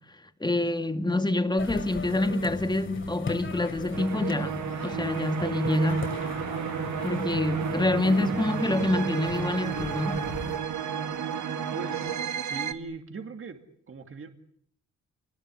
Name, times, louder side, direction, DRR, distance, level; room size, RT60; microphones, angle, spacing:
voice 1, 0.4-6.1 7.0-10.3, left 2 dB, 15° left, 2.1 m, -26 dB
sound 1, 1.6-10.6, left 4 dB, 45° left, 3.3 m, -39 dB
sound 2, 3.9-12.7, right 8 dB, 85° right, 1.9 m, -32 dB
voice 2, 11.7-13.6 13.9-14.3, right 4 dB, 45° right, 2.4 m, -40 dB
29.0 x 20.0 x 9.7 m
wide cardioid pair, 120°, 29 cm